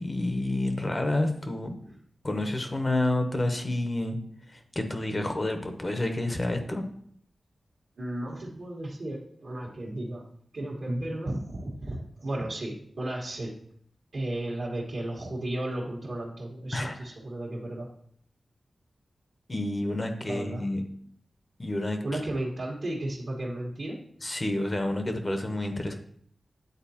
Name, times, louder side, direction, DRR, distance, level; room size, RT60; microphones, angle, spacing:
voice 1, 0.0-1.7 2.2-4.2 4.5-6.8 16.7-17.0 19.5-20.8 21.6-22.0 24.2-25.9, left 1 dB, 30° left, 6 dB, 0.8 m, -29 dB
voice 2, 8.0-10.2 10.5-13.5 14.1-17.9 20.3-20.7 22.0-24.0, right 1 dB, 65° right, -5 dB, 1.4 m, -34 dB
9.2 x 3.9 x 2.8 m, 0.65 s
wide cardioid pair, 85°, 0 cm